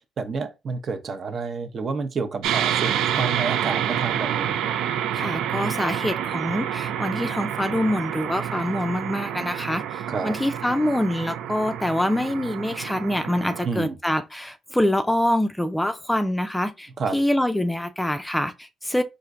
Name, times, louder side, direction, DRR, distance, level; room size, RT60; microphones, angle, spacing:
voice 1, 0.2-4.6 10.1-10.3 13.6-14.0 17.0-17.2, right 4 dB, 50° right, 0.6 m, -29 dB
sound 1, 2.4-13.7, right 10 dB, 90° right, 0.3 m, -28 dB
voice 2, 5.1-19.0, left 1 dB, 5° left, 0.4 m, -25 dB
4.3 x 2.5 x 2.5 m
cardioid pair, 90°, 0 cm